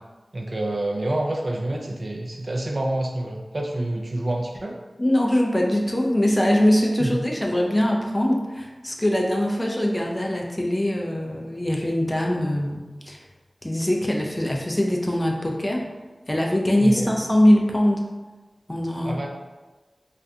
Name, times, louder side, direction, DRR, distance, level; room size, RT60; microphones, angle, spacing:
voice 1, 0.3-4.8 7.0-7.2 16.8-17.1 19.0-19.3, right 1 dB, 50° right, 0 dB, 0.4 m, -27 dB
voice 2, 5.0-13.2 13.6-15.9 16.3-18.1 18.7-19.2, left 1 dB, 25° left, 0 dB, 0.4 m, -22 dB
2.4 x 2.1 x 2.6 m, 1.2 s
cardioid pair, 40°, 0 cm